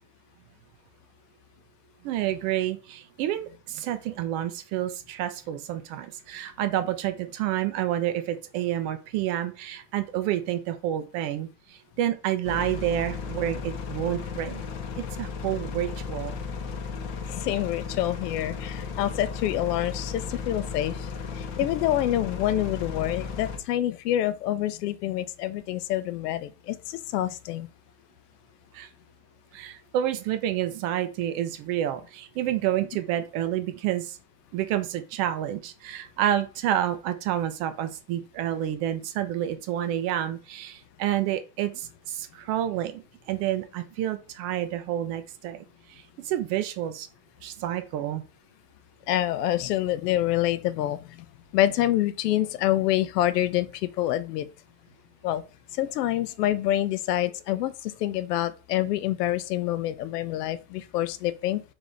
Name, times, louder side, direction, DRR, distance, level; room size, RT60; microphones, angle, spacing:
voice 1, 2.0-14.6 15.0-16.3 28.7-28.9 29.5-34.2 34.5-47.1 47.4-48.2, right 11 dB, 35° right, 0.4 m, -29 dB
sound 1, 12.4-23.6, left 5 dB, 45° left, 0.8 m, -35 dB
voice 2, 17.3-21.1 21.3-27.7 49.1-51.2 51.5-54.5 55.2-55.4 55.7-61.6, left 13 dB, 80° left, 0.7 m, -27 dB
3.6 x 3.4 x 3.8 m
supercardioid pair, 140°, 47 cm